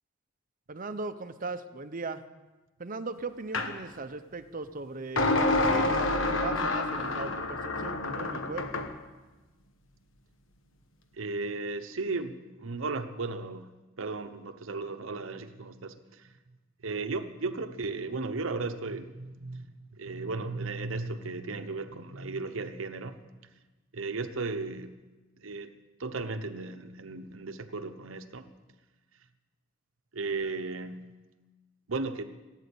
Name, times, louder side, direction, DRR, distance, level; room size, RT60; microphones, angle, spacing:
voice 1, 0.7-2.2 2.8-8.8, right 3 dB, 45° right, 10 dB, 0.8 m, -38 dB
sound 1, 3.5-3.7 5.2-8.9, left 2 dB, 75° left, 1.3 m, -28 dB
voice 2, 11.1-13.7 14.0-16.3 16.8-23.2 23.9-24.9 25.4-25.7 26.0-28.5 30.1-31.1 31.9-32.2, right 3 dB, 80° right, 9 dB, 0.9 m, -35 dB
16.0 x 9.2 x 8.5 m, 1.2 s
head